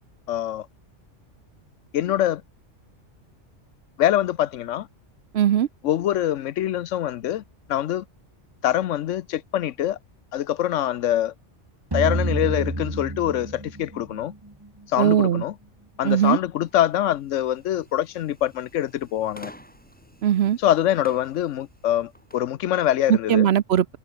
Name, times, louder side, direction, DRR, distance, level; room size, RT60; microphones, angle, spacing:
voice 1, 0.3-0.7 1.9-2.4 4.0-4.9 5.8-7.4 7.7-8.0 8.6-10.0 10.3-11.3 11.9-14.3 14.9-15.5 16.0-19.5 20.6-23.5, left 12 dB, 80° left, 1.0 m, -24 dB
voice 2, 5.3-5.7 15.0-15.4 16.0-16.4 20.2-20.6 23.1-23.8, right 10 dB, 65° right, 0.9 m, -19 dB
sound 1, 11.9-14.8, right 1 dB, 20° right, 2.4 m, -28 dB
sound 2, 16.6-22.5, equal, 5° left, 7.9 m, -50 dB
omnidirectional pair, 1.3 m